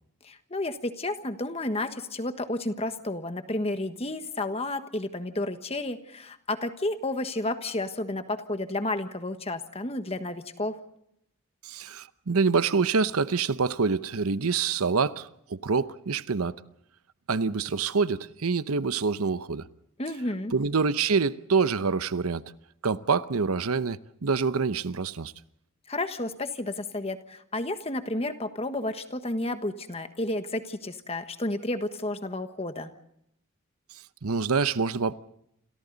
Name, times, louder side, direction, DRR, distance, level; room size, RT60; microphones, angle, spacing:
voice 1, 0.2-10.8 20.0-20.5 25.9-32.9, left 2 dB, 30° left, 1.4 m, -31 dB
voice 2, 11.6-16.5 17.3-19.7 20.5-22.4 22.8-25.3 34.2-35.1, right 5 dB, 90° right, 0.8 m, -26 dB
29.0 x 27.5 x 4.0 m
head